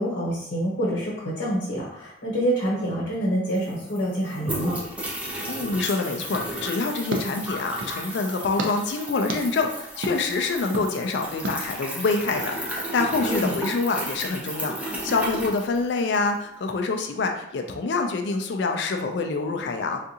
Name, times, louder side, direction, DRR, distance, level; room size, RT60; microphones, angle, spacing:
voice 1, 0.0-4.8 13.2-13.5, equal, 85° left, -5 dB, 1.0 m, -26 dB
sound 1, 3.2-3.3 3.5-16.3, right 1 dB, 5° right, 0.5 m, -34 dB
voice 2, 5.5-20.0, left 3 dB, 65° left, 4 dB, 0.4 m, -26 dB
sound 2, 6.3-8.0 8.6-8.7 9.3-9.4 10.0-10.2 10.7-10.9 11.4-11.6, right 1 dB, 85° right, 0.5 m, -32 dB
3.6 x 2.4 x 2.7 m, 0.81 s
head